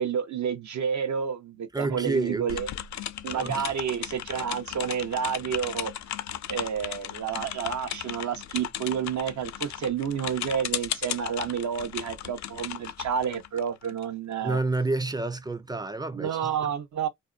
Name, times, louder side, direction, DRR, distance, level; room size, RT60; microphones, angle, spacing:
voice 1, 0.0-2.7 3.2-5.9 6.5-14.6 16.1-17.1, right 8 dB, 65° right, 0.8 m, -30 dB
voice 2, 1.7-2.6 3.3-3.7 14.4-16.7, right 2 dB, 15° right, 0.4 m, -29 dB
sound 1, 2.5-14.0, left 11 dB, 65° left, 0.4 m, -36 dB
2.6 x 2.1 x 2.3 m
supercardioid pair, 50°, 31 cm